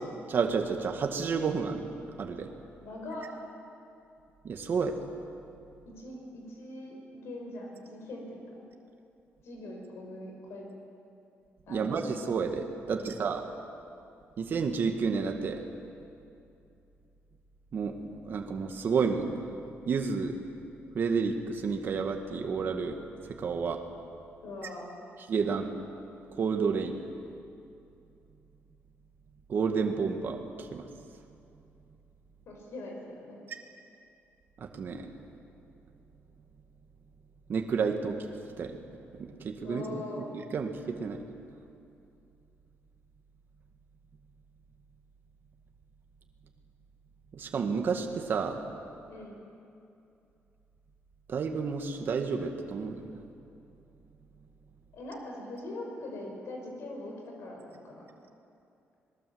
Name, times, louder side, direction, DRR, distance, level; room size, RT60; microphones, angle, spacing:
voice 1, 0.3-1.9 2.2-2.5 4.4-5.0 11.7-13.4 14.4-15.6 17.7-19.5 19.9-20.4 20.9-23.0 23.3-23.8 25.3-25.7 26.3-27.0 29.5-30.8 34.6-35.1 37.5-38.3 38.6-38.8 39.2-40.2 40.5-41.2 47.3-48.6 51.3-53.1, right 5 dB, 45° right, 4 dB, 1.9 m, -30 dB
voice 2, 2.8-3.3 5.8-8.4 9.4-10.7 11.7-11.9 12.8-13.0 24.4-24.9 32.5-33.4 39.6-40.3 49.1-49.5 54.9-58.1, left 2 dB, 70° left, 0 dB, 5.6 m, -42 dB
26.5 x 20.5 x 8.0 m, 2.6 s
wide cardioid pair, 165°, 5 cm